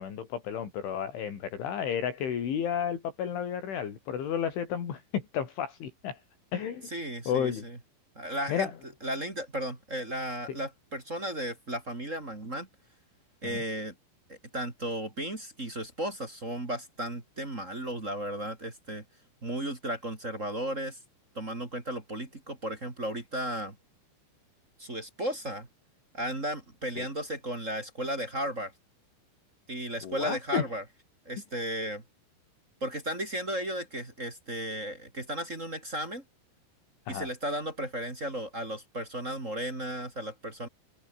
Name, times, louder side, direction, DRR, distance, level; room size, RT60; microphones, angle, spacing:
voice 1, 0.0-6.2 6.5-6.9 7.3-7.6 8.5-8.7 10.5-10.6 13.4-13.6 27.0-27.1 30.0-30.7 37.1-37.3, left 8 dB, 75° left, 6.2 m, -32 dB
voice 2, 6.9-7.8 8.1-8.7 9.0-12.7 13.4-13.9 14.3-19.0 19.4-21.0 21.3-23.8 24.8-25.7 26.1-28.7 29.7-30.8 31.2-32.0 32.8-36.2 37.1-40.7, right 1 dB, 20° right, 2.6 m, -35 dB
omnidirectional pair, 5.6 m